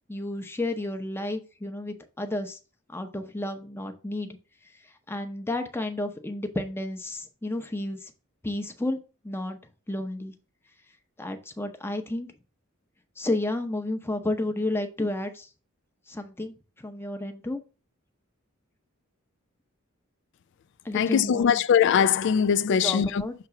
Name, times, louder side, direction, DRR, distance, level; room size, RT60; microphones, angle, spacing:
voice 1, 0.1-2.6 2.9-4.3 5.1-8.1 8.4-9.0 9.2-9.6 9.9-10.3 11.2-12.3 13.2-15.5 16.1-17.6 20.8-21.6 22.7-23.3, left 1 dB, 10° left, 0.7 m, -31 dB
voice 2, 20.9-23.2, left 7 dB, 55° left, 0.3 m, -21 dB
6.8 x 3.0 x 5.7 m
head